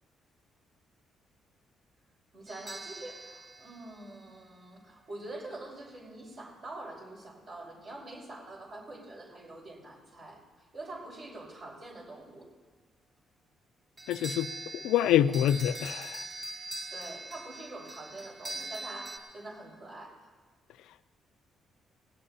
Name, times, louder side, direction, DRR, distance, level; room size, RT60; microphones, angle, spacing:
voice 1, 2.3-10.4 10.7-12.5 16.9-20.2, right 2 dB, 50° right, 4.9 m, -45 dB
sound 1, 2.5-4.7 14.0-19.2, right 2 dB, 30° right, 2.6 m, -42 dB
voice 2, 14.1-14.5 14.8-16.2, left 11 dB, 90° left, 0.4 m, -25 dB
20.0 x 17.0 x 2.9 m
cardioid pair, 90°, 0 cm